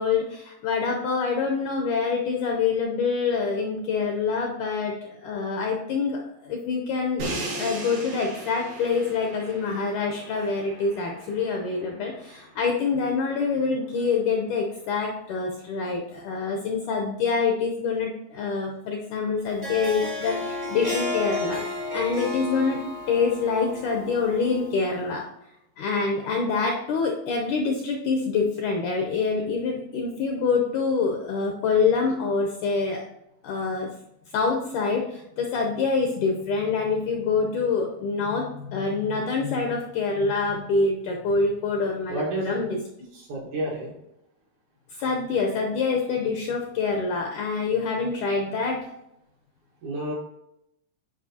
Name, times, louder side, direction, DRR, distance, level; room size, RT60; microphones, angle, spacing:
voice 1, 0.0-22.8 23.1-25.3 25.8-33.0 33.4-33.9 34.3-42.8 44.9-48.9, left 4 dB, 75° left, 1 dB, 1.8 m, -26 dB
Crash cymbal, 7.2-13.2, right 2 dB, 85° right, 3.9 m, -37 dB
Harp, 19.4-24.9, left 2 dB, 35° right, 0.9 m, -32 dB
voice 2, 42.1-42.6 43.1-43.9 49.8-50.1, right 1 dB, 65° right, -2 dB, 2.1 m, -30 dB
10.0 x 5.0 x 2.8 m, 0.82 s
omnidirectional pair, 4.4 m